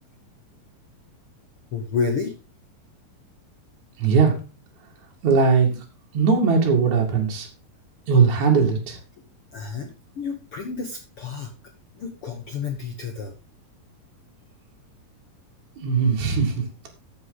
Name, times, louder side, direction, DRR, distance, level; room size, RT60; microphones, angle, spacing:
voice 1, 1.7-2.3 9.5-9.9 10.2-11.5 11.9-13.3, left 5 dB, 70° left, 4 dB, 1.3 m, -29 dB
voice 2, 4.0-4.3 5.2-5.8 6.1-7.5 8.1-9.0 15.8-16.9, right 5 dB, 55° right, -1 dB, 3.4 m, -19 dB
14.0 x 6.6 x 4.0 m, 0.34 s
omnidirectional pair, 4.2 m